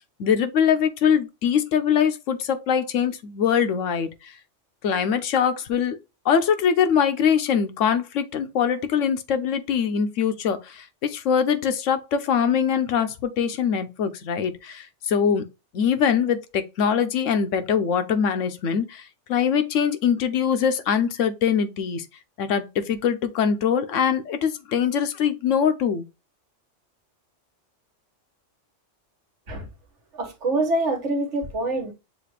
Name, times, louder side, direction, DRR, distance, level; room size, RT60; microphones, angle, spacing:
voice 1, 0.2-4.3 4.8-6.0 6.2-15.4 15.7-22.0 22.4-26.0, left 7 dB, 85° left, 1.1 m, -23 dB
voice 2, 30.1-31.9, right 2 dB, 70° right, 1.5 m, -25 dB
6.6 x 2.5 x 3.2 m
omnidirectional pair, 1.3 m